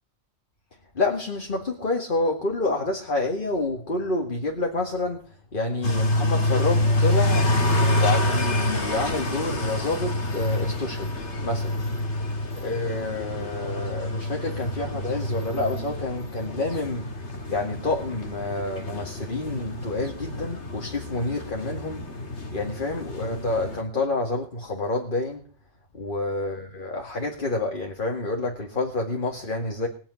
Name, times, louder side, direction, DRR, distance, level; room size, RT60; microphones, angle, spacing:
voice 1, 0.9-5.2 5.5-11.1 11.4-11.7 12.6-17.1 17.5-22.0 22.5-25.4 25.9-29.9, left 2 dB, 45° left, 1 dB, 2.3 m, -28 dB
sound 1, 5.8-23.8, left 1 dB, 70° left, 2.2 m, -27 dB
21.0 x 7.2 x 9.7 m, 0.44 s
omnidirectional pair, 1.2 m